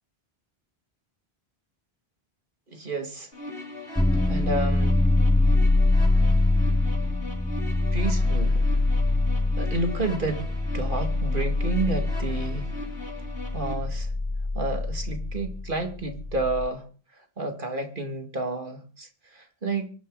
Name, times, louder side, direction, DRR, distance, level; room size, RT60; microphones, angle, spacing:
voice 1, 2.7-3.3 4.3-5.0 7.9-8.7 9.6-12.7 13.5-14.1 14.5-16.9 17.1-19.9, right 2 dB, 55° right, 2.5 m, -30 dB
sound 1, 3.3-13.7, left 2 dB, 70° left, 3.9 m, -40 dB
sound 2, 4.0-16.7, left 2 dB, 5° left, 0.8 m, -24 dB
24.0 x 10.5 x 4.0 m
omnidirectional pair, 1.0 m